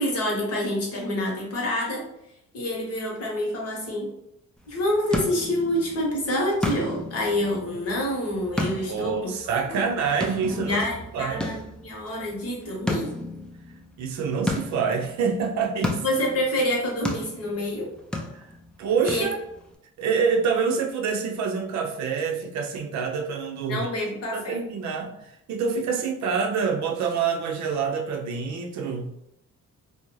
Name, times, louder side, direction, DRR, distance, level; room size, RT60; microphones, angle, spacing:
voice 1, 0.0-2.0 2.5-4.1 4.7-9.3 9.7-9.8 10.5-13.1 16.0-17.9 19.0-19.3 23.7-24.6, left 1 dB, 55° left, -1 dB, 1.0 m, -27 dB
sound 1, 4.6-19.7, left 1 dB, 5° left, 0.3 m, -34 dB
voice 2, 8.9-10.8 11.1-11.4 14.0-16.0 18.3-18.5 18.8-19.4 20.0-23.9 24.3-29.1, right 5 dB, 65° right, 2 dB, 0.5 m, -26 dB
2.5 x 2.1 x 3.0 m, 0.82 s
cardioid pair, 90°, 30 cm